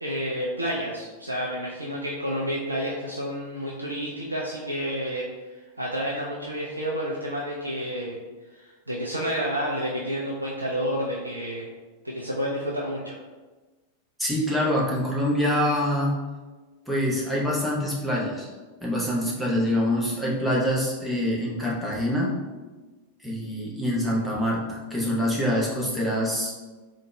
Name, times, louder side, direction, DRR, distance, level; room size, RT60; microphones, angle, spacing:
voice 1, 0.0-8.2 8.5-11.7 12.0-13.2, equal, 80° right, -4 dB, 0.5 m, -30 dB
voice 2, 14.2-16.1 16.9-18.5 18.8-22.3 23.2-26.5, equal, ahead, -5 dB, 0.9 m, -25 dB
4.0 x 2.4 x 3.2 m, 1.3 s
figure-of-eight pair, 90°, 0 cm